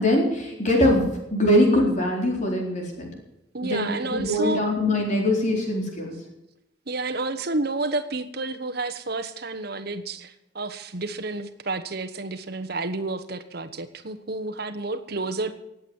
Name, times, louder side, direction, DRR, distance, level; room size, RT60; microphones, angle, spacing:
voice 1, 0.0-3.1 3.6-6.1, left 1 dB, 40° left, 0 dB, 4.2 m, -22 dB
voice 2, 3.5-4.7 6.9-15.6, right 2 dB, 60° right, 9 dB, 1.2 m, -30 dB
18.5 x 8.3 x 7.2 m, 0.87 s
head